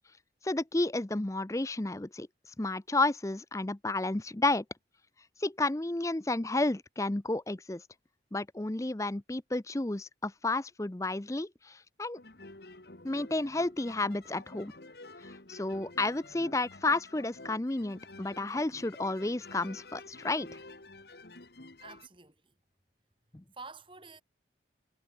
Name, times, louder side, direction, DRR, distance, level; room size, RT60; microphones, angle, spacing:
voice 1, 0.4-2.3 2.6-4.6 5.4-7.8 8.3-12.2 13.0-14.7 15.5-20.5 23.3-23.4, left 2 dB, 15° left, 0.6 m, -31 dB
sound 1, 12.1-22.1, left 2 dB, 60° left, 2.0 m, -50 dB
voice 2, 21.8-22.6 23.5-24.2, right 4 dB, 30° right, 5.9 m, -49 dB
head